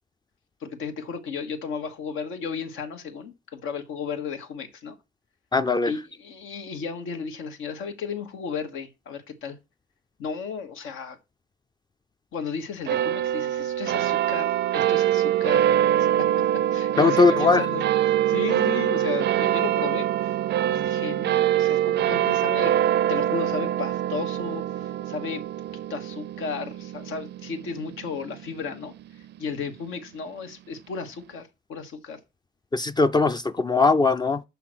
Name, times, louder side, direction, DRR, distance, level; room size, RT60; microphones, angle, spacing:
voice 1, 0.6-5.0 5.8-9.6 10.2-11.2 12.3-15.6 16.0-16.3 16.7-22.7 23.1-25.4 25.7-28.9 29.4-32.2, left 5 dB, 85° left, 1.4 m, -34 dB
voice 2, 5.5-5.9 17.0-17.6 32.7-34.4, left 3 dB, 20° left, 0.4 m, -20 dB
sound 1, 12.9-29.6, right 11 dB, 60° right, 0.4 m, -24 dB
5.8 x 5.5 x 6.2 m
cardioid pair, 90°, 20 cm